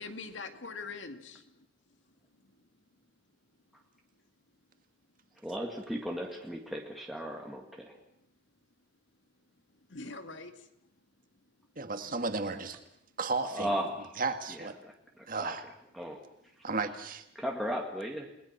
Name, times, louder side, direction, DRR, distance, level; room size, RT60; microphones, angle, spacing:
voice 1, 0.0-1.7 9.9-10.7, left 4 dB, 75° left, 7 dB, 2.2 m, -43 dB
voice 2, 5.4-8.0 13.5-14.2 14.5-15.6 15.9-16.2 17.4-18.3, equal, ahead, -1 dB, 2.0 m, -36 dB
voice 3, 11.8-12.8 13.2-13.7 14.2-14.7 15.3-15.6 16.6-17.2, right 3 dB, 45° right, 7 dB, 2.0 m, -33 dB
29.5 x 20.5 x 6.0 m, 0.77 s
head